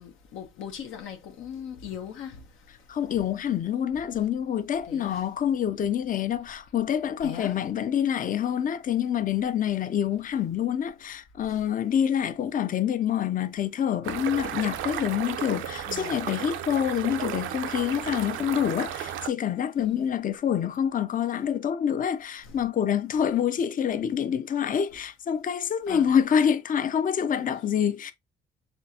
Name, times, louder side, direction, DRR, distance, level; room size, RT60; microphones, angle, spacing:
voice 1, 0.0-2.5 4.9-5.2 7.2-7.5 11.5-11.6 15.9-16.2 19.8-20.1 25.9-26.1, left 8 dB, 85° left, 0.9 m, -39 dB
voice 2, 2.9-28.1, left 9 dB, 45° left, 0.5 m, -26 dB
sound 1, 14.0-19.3, right 10 dB, 80° right, 0.6 m, -34 dB
4.4 x 3.4 x 2.7 m
cardioid pair, 90°, 20 cm